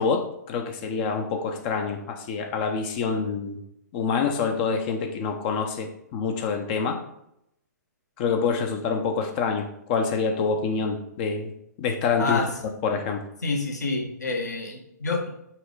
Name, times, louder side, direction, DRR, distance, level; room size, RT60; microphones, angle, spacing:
voice 1, 0.0-3.6 3.9-7.0 8.2-11.5 11.8-12.4 12.8-13.2, left 5 dB, 30° left, 4 dB, 0.7 m, -26 dB
voice 2, 13.4-15.3, left 3 dB, 65° left, 0 dB, 1.7 m, -27 dB
5.8 x 3.6 x 5.0 m, 0.76 s
figure-of-eight pair, 120°, 10 cm